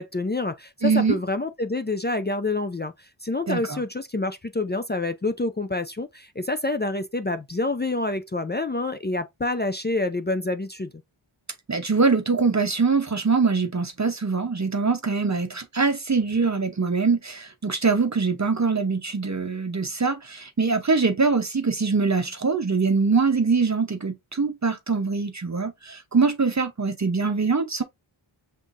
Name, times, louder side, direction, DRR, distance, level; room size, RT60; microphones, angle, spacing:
voice 1, 0.0-10.9, left 2 dB, 20° left, 0.4 m, -27 dB
voice 2, 0.8-1.2 3.5-3.8 11.7-27.8, right 4 dB, 35° right, 0.7 m, -23 dB
5.6 x 3.6 x 2.5 m
wide cardioid pair, 85°, 49 cm